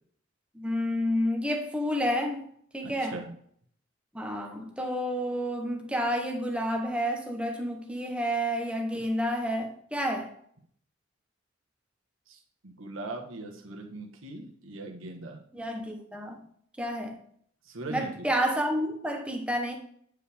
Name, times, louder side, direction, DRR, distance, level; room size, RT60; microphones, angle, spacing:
voice 1, 0.5-2.5 2.7-3.2 4.1-10.3 15.5-16.4 16.8-17.2 17.9-19.7, equal, 5° right, 1.0 m, -30 dB
voice 2, 2.8-3.3 8.9-9.0 12.3-15.4 17.6-18.3, right 2 dB, 80° right, 1.4 m, -40 dB
9.0 x 4.9 x 3.5 m
head